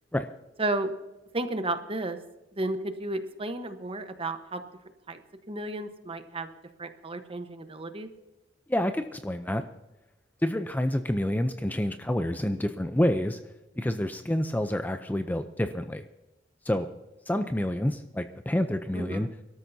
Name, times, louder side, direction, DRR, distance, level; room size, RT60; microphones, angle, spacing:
voice 1, 0.6-0.9 1.3-2.2 2.6-4.6 5.1-5.2 5.5-6.5 6.8-8.1 18.9-19.3, right 2 dB, 30° right, 8 dB, 1.0 m, -32 dB
voice 2, 8.7-9.6 10.4-13.4 13.8-16.0 16.7-16.9 17.3-19.3, left 1 dB, 10° left, 8 dB, 0.5 m, -28 dB
24.5 x 13.0 x 2.7 m, 1.0 s
head